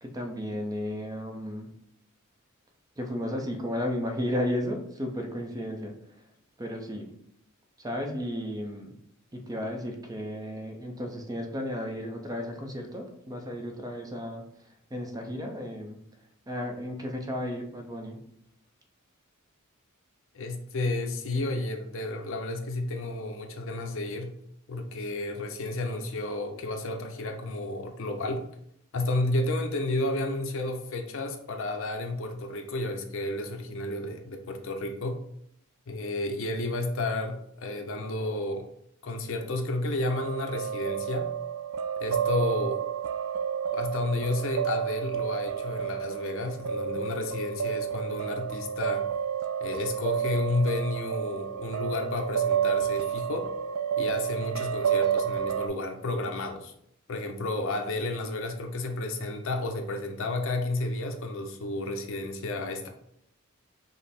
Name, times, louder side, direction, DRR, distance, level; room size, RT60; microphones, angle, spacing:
voice 1, 0.0-1.7 3.0-5.9 6.6-7.1 7.8-8.9 9.3-14.4 14.9-16.0 16.5-18.2, equal, 15° right, 3 dB, 0.6 m, -33 dB
voice 2, 20.3-24.3 24.7-28.4 28.9-35.2 35.9-38.6 39.0-41.3 42.0-42.8 43.7-49.0 49.6-53.5 53.9-56.7 57.1-62.9, left 2 dB, 65° left, 4 dB, 0.6 m, -31 dB
sound 1, 40.1-55.7, right 8 dB, 80° right, 0.3 m, -30 dB
5.3 x 2.0 x 4.2 m, 0.73 s
head